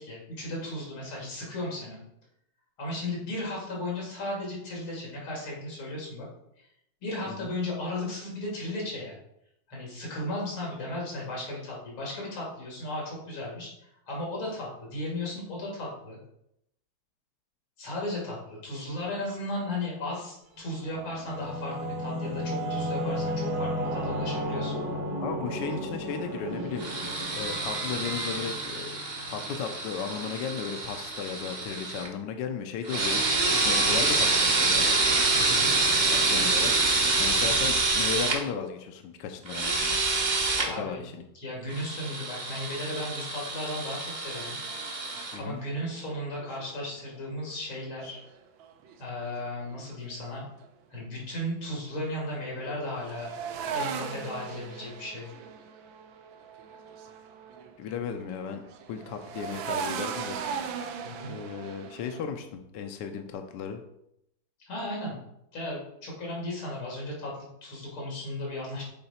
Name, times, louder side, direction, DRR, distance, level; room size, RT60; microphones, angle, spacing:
voice 1, 0.0-2.0 2.8-6.3 7.0-9.2 9.7-13.7 14.1-16.2 17.8-24.7 35.3-35.7 40.7-41.0 41.3-44.6 45.4-48.2 49.0-50.4 50.9-53.3 53.7-55.3 61.0-61.4 64.6-65.2 65.5-68.8, left 1 dB, 85° left, -4 dB, 3.2 m, -35 dB
Singing / Musical instrument, 20.7-29.8, equal, 55° right, 1.3 m, -34 dB
voice 2, 25.2-27.0 27.3-29.0 29.3-34.9 36.1-36.9 37.2-40.0 40.6-41.2 45.3-45.6 57.8-58.6 58.9-60.4 61.3-63.8, left 6 dB, 70° left, 6 dB, 1.2 m, -35 dB
sound 1, 26.8-32.1 32.8-38.4 39.5-40.7 41.7-45.4, right 3 dB, 40° right, 0.6 m, -27 dB
sound 2, 44.3-47.2 48.0-50.7 52.4-57.9 58.2-62.2, right 6 dB, 80° right, 1.4 m, -39 dB
7.8 x 3.9 x 4.2 m, 0.78 s
omnidirectional pair, 2.2 m